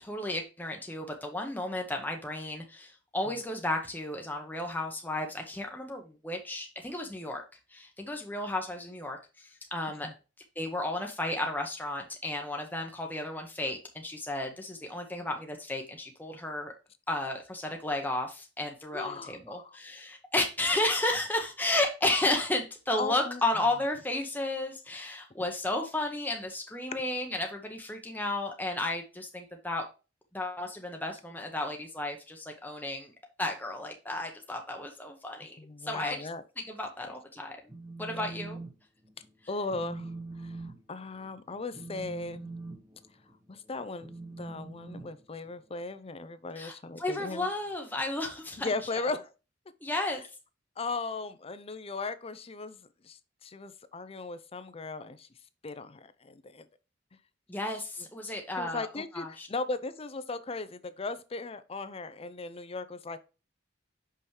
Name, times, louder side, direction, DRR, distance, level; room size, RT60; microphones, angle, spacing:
voice 1, 0.0-7.4 7.7-10.1 10.6-16.7 17.1-29.9 30.3-33.1 33.4-36.3 36.6-37.6 38.0-38.6 46.6-49.0 49.8-50.2 57.5-58.9 59.1-59.5, left 2 dB, 10° left, 0.9 m, -33 dB
voice 2, 18.9-19.8 23.0-23.4 35.4-36.4 37.0-37.1 38.1-38.2 39.5-40.1 40.4-42.6 43.5-44.1 44.4-47.5 48.6-49.3 50.8-55.3 55.6-56.6 58.3-63.2, left 3 dB, 30° left, 0.5 m, -37 dB
Telephone, 37.5-38.7 39.0-39.3 39.7-45.8, right 3 dB, 20° right, 1.1 m, -43 dB
5.9 x 5.5 x 3.2 m
head